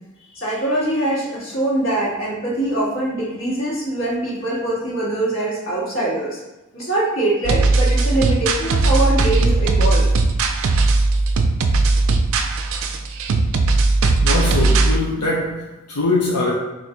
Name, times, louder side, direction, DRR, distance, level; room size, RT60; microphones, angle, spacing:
voice 1, 0.3-6.4 6.7-10.1, right 1 dB, 60° left, -6 dB, 1.5 m, -23 dB
sound 1, 7.4-15.0, right 3 dB, 60° right, 0.3 m, -18 dB
voice 2, 14.2-16.5, left 2 dB, 90° left, -3 dB, 0.6 m, -22 dB
4.3 x 2.5 x 3.4 m, 1.1 s
head